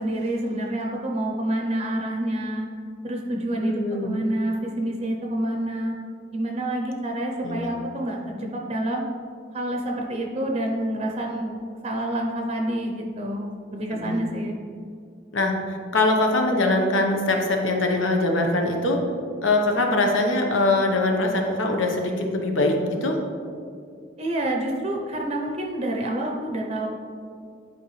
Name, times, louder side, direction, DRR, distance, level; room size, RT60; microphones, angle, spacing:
voice 1, 0.0-2.7 3.0-5.9 6.3-9.0 9.5-11.6 11.8-14.6 24.2-26.9, right 1 dB, 30° right, 0 dB, 0.6 m, -28 dB
voice 2, 3.6-4.1 7.4-7.7 13.9-14.2 15.3-19.0 19.4-23.2, left 2 dB, 80° left, 2 dB, 1.0 m, -22 dB
11.0 x 4.5 x 3.2 m, 2.3 s
head